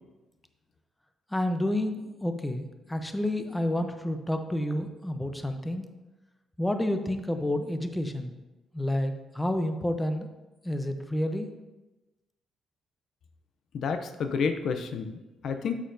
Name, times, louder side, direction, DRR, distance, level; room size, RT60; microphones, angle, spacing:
voice 1, 1.3-5.9 6.6-8.3 8.7-10.3 10.6-11.5, left 1 dB, 10° left, 7 dB, 0.7 m, -29 dB
voice 2, 13.7-15.7, left 5 dB, 65° left, 7 dB, 0.5 m, -30 dB
8.5 x 7.3 x 2.6 m, 1.1 s
cardioid pair, 90°, 0 cm